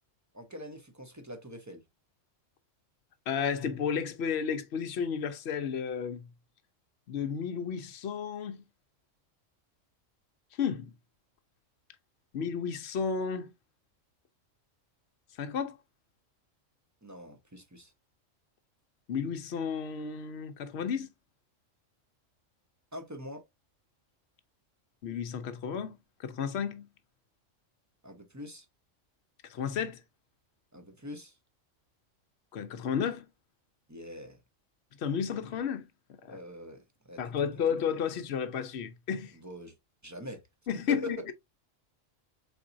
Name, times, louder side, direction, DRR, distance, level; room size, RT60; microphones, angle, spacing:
voice 1, 0.3-1.8 17.0-17.9 22.9-23.4 28.0-28.7 30.7-31.3 33.9-34.4 36.3-37.6 39.4-39.7 40.0-40.4 40.7-41.3, equal, 20° right, 0.6 m, -43 dB
voice 2, 3.3-6.3 7.1-8.6 10.6-10.9 12.3-13.5 15.4-15.8 19.1-21.1 25.0-26.9 29.4-30.0 32.5-33.3 35.0-35.9 36.2-36.4 37.2-39.3 40.7-41.3, left 7 dB, 60° left, 0.9 m, -32 dB
4.3 x 4.0 x 2.5 m
omnidirectional pair, 1.3 m